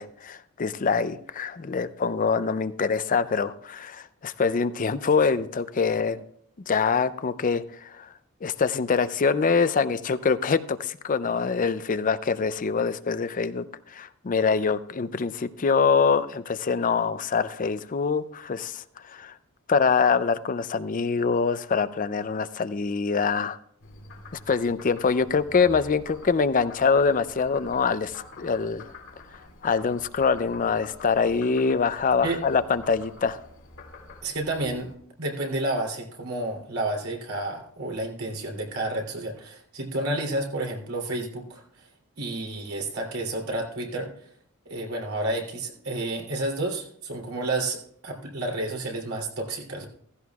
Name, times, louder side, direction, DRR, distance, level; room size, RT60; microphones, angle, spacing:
voice 1, 0.0-6.2 6.7-8.1 8.4-19.3 19.7-23.6 24.3-28.9 29.6-33.4, left 5 dB, 40° left, 14 dB, 0.5 m, -24 dB
Frog, 23.8-35.0, left 3 dB, 60° left, 2.4 m, -47 dB
voice 2, 34.2-34.9 35.2-41.6 42.2-44.3 44.7-49.9, right 2 dB, 85° right, 1 dB, 3.0 m, -30 dB
15.5 x 15.0 x 2.4 m, 0.64 s
head